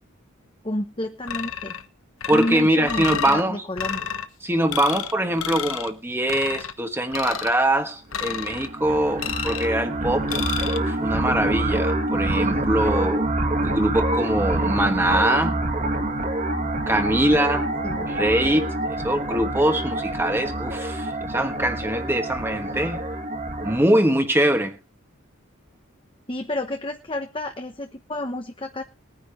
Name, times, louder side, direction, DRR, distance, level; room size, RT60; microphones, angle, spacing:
voice 1, 0.6-1.7 2.3-4.1 17.8-18.1 26.3-28.8, left 1 dB, 25° left, 1.0 m, -30 dB
sound 1, 1.3-1.8 2.2-3.4 3.8-4.3 4.7-5.1 5.4-5.9 6.3-6.7 7.1-7.6 8.1-8.7 9.2-9.7 10.3-10.8, left 8 dB, 80° left, 1.2 m, -30 dB
voice 2, 2.3-3.6 4.4-10.3 10.6-13.3 13.6-15.6 16.9-17.7 18.1-23.0 23.6-24.8, right 1 dB, 10° right, 1.3 m, -23 dB
sound 2, 8.2-23.8, right 1 dB, 35° right, 2.1 m, -26 dB
20.5 x 9.9 x 3.2 m
head